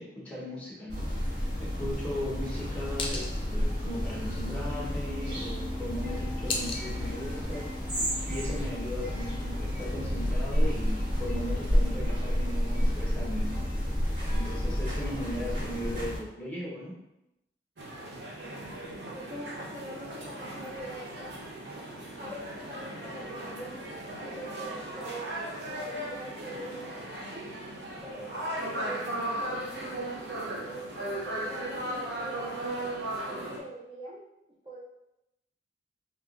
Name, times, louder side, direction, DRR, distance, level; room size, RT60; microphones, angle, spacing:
voice 1, 0.0-7.7 8.3-14.0 14.3-17.0, left 1 dB, 10° left, -5 dB, 0.9 m, -38 dB
sound 1, 0.9-16.2, equal, 85° right, 1.4 m, -30 dB
sound 2, 1.7-7.8, left 3 dB, 30° left, 0.5 m, -41 dB
sound 3, 17.8-33.6, right 1 dB, 70° right, 0.6 m, -37 dB
voice 2, 19.1-21.6 22.2-23.9 24.2-25.2 25.5-27.5 27.9-29.7 30.5-32.6 33.2-34.2 34.6-34.8, right 1 dB, 25° right, -6 dB, 0.5 m, -43 dB
3.4 x 2.8 x 2.4 m, 0.87 s
head